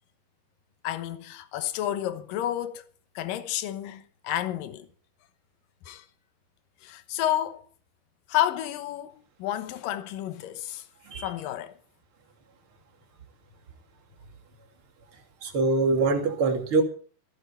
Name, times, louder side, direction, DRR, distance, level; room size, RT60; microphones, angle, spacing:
voice 1, 0.8-2.8 3.2-4.9 5.9-6.1 6.8-7.6 8.3-10.9 11.2-11.8, left 12 dB, 70° left, 2.3 m, -30 dB
voice 2, 15.4-16.8, right 3 dB, 35° right, 2.7 m, -24 dB
15.5 x 15.5 x 4.4 m
omnidirectional pair, 4.9 m